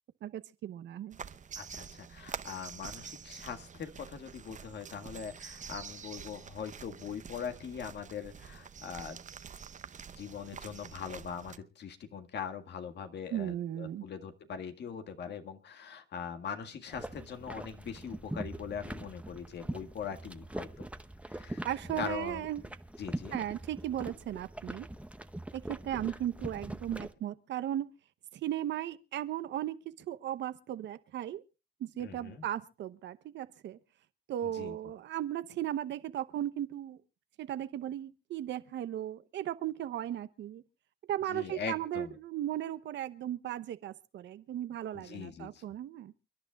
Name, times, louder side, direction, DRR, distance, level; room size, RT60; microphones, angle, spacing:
voice 1, 0.2-1.2 13.3-14.0 21.6-22.6 23.3-24.9 25.5-27.9 28.3-31.4 31.8-33.8 34.3-37.0 37.4-40.6 41.1-46.1, right 12 dB, 80° right, 0.9 m, -36 dB
sound 1, 1.1-11.6, right 7 dB, 45° right, 0.8 m, -47 dB
voice 2, 1.6-9.2 10.2-20.9 21.2-21.7 22.0-22.5 23.0-23.4 32.0-32.4 34.4-34.8 41.3-42.2 44.9-45.6, left 7 dB, 70° left, 1.9 m, -41 dB
sound 2, 16.9-27.1, right 1 dB, 5° right, 0.9 m, -42 dB
29.5 x 11.0 x 2.4 m
cardioid pair, 70°, 18 cm